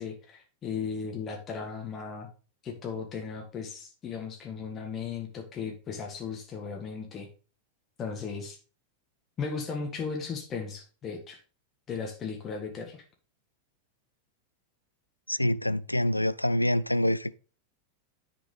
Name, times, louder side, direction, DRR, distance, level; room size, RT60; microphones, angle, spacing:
voice 1, 0.0-2.3 2.6-7.3 8.0-8.6 9.4-11.4 11.9-13.0, left 5 dB, 25° left, 1.6 m, -36 dB
voice 2, 15.3-17.3, left 1 dB, 85° left, 0.3 m, -26 dB
10.0 x 6.1 x 3.2 m
figure-of-eight pair, 90°, 0 cm